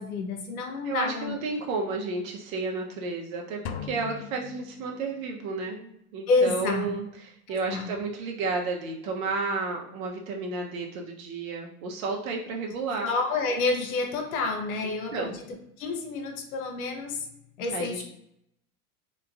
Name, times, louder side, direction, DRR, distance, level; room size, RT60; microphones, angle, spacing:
voice 1, 0.0-1.4 6.3-6.9 7.5-8.0 13.0-15.3 15.8-17.3 17.6-18.0, left 3 dB, 75° left, 4 dB, 0.8 m, -28 dB
voice 2, 0.8-13.1 14.8-15.4 17.7-18.0, right 3 dB, 65° right, 0 dB, 0.8 m, -32 dB
sound 1, 3.7-5.5, left 8 dB, 45° left, 0.5 m, -39 dB
3.4 x 3.0 x 2.3 m, 0.77 s
hypercardioid pair, 80°, 44 cm